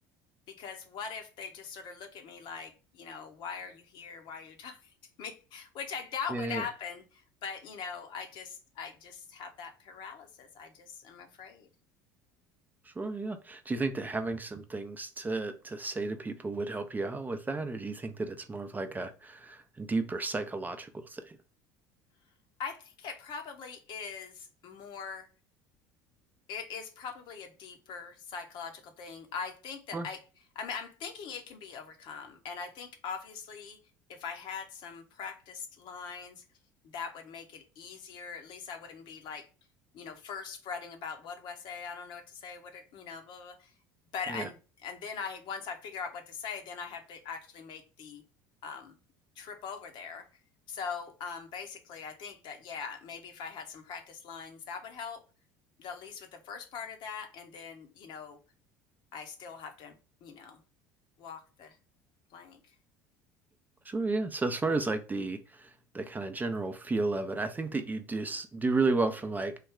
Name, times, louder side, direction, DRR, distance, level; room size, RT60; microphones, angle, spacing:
voice 1, 0.5-4.8 5.2-11.7 22.6-25.3 26.5-30.2 30.5-33.8 34.1-36.4 36.8-39.5 39.9-43.7 44.1-44.6 44.8-48.2 48.6-49.0 49.4-50.3 50.7-55.2 55.8-58.4 59.1-60.6 61.2-61.8 62.3-62.6, left 6 dB, 55° left, 0.8 m, -41 dB
voice 2, 6.3-6.6 12.8-21.4 29.9-30.1 44.3-44.5 63.8-69.6, right 3 dB, 20° right, 0.5 m, -33 dB
3.2 x 2.3 x 3.5 m
hypercardioid pair, 70°, 10 cm